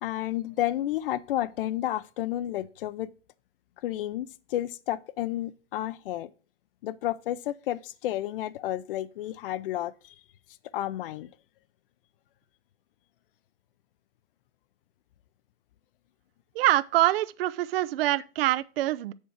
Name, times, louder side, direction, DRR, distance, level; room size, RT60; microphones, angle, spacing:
voice 1, 0.0-3.1 3.8-6.3 6.8-10.1 10.7-11.3, left 13 dB, 50° left, 0.5 m, -31 dB
voice 2, 16.5-19.1, right 15 dB, 55° right, 0.5 m, -25 dB
7.3 x 4.5 x 6.2 m
hypercardioid pair, 150°, 36 cm